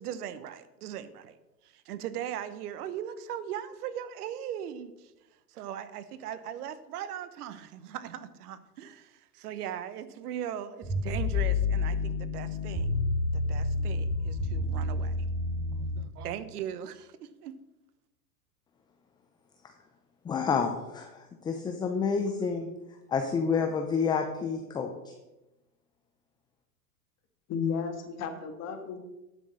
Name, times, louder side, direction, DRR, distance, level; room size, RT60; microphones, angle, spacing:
voice 1, 0.0-1.4 1.6-5.1 5.5-13.0 13.3-15.1 16.0-17.6, right 10 dB, 70° right, 14 dB, 1.1 m, -39 dB
sound 1, 10.8-16.0, left 3 dB, 10° right, 4.6 m, -29 dB
voice 2, 20.2-22.7 23.1-25.1, left 5 dB, 10° left, 5 dB, 0.4 m, -29 dB
voice 3, 27.5-29.0, left 6 dB, 35° left, 6 dB, 1.7 m, -33 dB
11.5 x 6.4 x 6.3 m, 1.0 s
hypercardioid pair, 125°, 48 cm